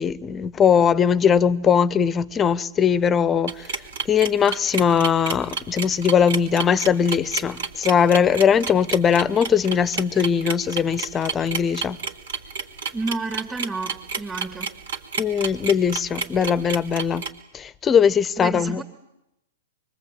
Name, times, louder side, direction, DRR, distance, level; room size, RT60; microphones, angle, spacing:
voice 1, 0.0-3.7 4.1-12.0 15.2-17.2 17.5-18.8, left 7 dB, 20° left, 1.0 m, -20 dB
sound 1, 3.5-17.3, right 5 dB, 70° right, 3.8 m, -30 dB
voice 2, 12.9-14.7 18.4-18.8, right 3 dB, 15° right, 3.1 m, -30 dB
25.0 x 23.5 x 9.0 m
hypercardioid pair, 115°, 0 cm